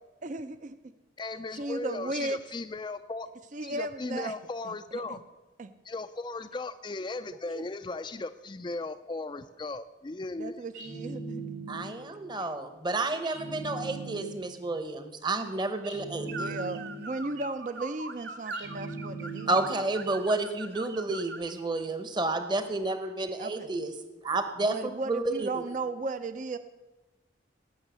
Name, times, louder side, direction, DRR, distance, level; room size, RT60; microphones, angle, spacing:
voice 1, 0.2-0.8 1.5-2.4 3.5-4.3 4.6-5.2 5.6-5.7 7.5-7.6 10.4-11.4 12.9-13.1 16.3-19.5 23.4-23.7 24.6-26.6, right 2 dB, 40° right, 11 dB, 0.5 m, -35 dB
voice 2, 1.2-3.3 3.6-5.2 5.8-10.6, left 3 dB, 25° left, 9 dB, 0.4 m, -37 dB
sound 1, 10.7-12.1 13.2-14.6 15.8-17.2 18.5-19.9, right 3 dB, 85° right, 5.3 m, -40 dB
voice 3, 11.7-16.6 19.5-23.9 24.2-25.6, right 2 dB, 25° right, 8 dB, 0.9 m, -30 dB
sound 2, 16.3-21.6, right 3 dB, 60° right, 1.0 m, -42 dB
18.0 x 6.4 x 8.1 m, 1.1 s
head